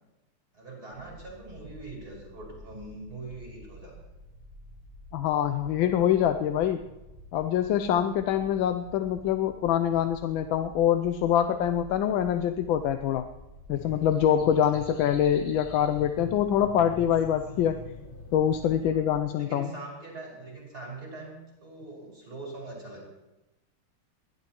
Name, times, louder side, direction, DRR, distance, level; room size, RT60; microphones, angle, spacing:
voice 1, 0.5-4.0 18.7-19.0 19.3-23.2, right 2 dB, 45° right, -2 dB, 6.5 m, -42 dB
sound 1, 0.9-19.2, equal, 15° right, 2.9 m, -49 dB
voice 2, 5.1-6.9 7.3-13.2 13.7-17.8 18.3-19.7, left 10 dB, 75° left, 8 dB, 1.4 m, -25 dB
sound 2, 13.7-18.9, left 4 dB, 40° left, 0.7 m, -45 dB
29.5 x 12.0 x 3.1 m, 1.0 s
omnidirectional pair, 2.3 m